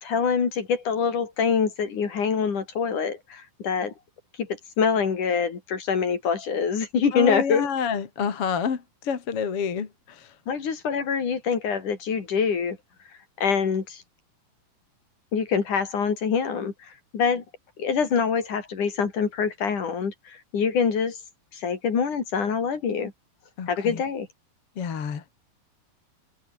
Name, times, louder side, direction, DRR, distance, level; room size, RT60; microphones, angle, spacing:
voice 1, 0.0-3.9 4.4-7.7 10.5-12.8 13.4-14.0 15.3-17.4 17.8-21.2 21.5-23.1 23.7-24.3, left 6 dB, 60° left, 4.8 m, -25 dB
voice 2, 7.1-10.3 23.6-24.0 24.8-25.2, left 6 dB, 45° left, 3.0 m, -28 dB
omnidirectional pair, 4.0 m